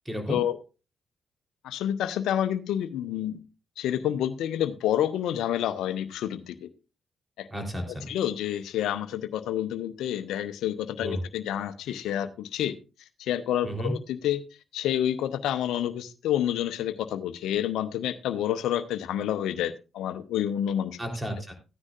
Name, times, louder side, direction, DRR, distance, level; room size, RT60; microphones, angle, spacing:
voice 1, 0.1-0.4 7.5-8.1 11.0-11.2 13.6-13.9 21.0-21.5, equal, 10° right, 4 dB, 3.5 m, -32 dB
voice 2, 1.6-3.4 3.8-6.7 7.4-7.5 8.1-12.7 13.2-14.4 14.7-21.0, left 11 dB, 75° left, 12 dB, 0.7 m, -28 dB
15.0 x 9.7 x 2.4 m, 0.31 s
hypercardioid pair, 40°, 0 cm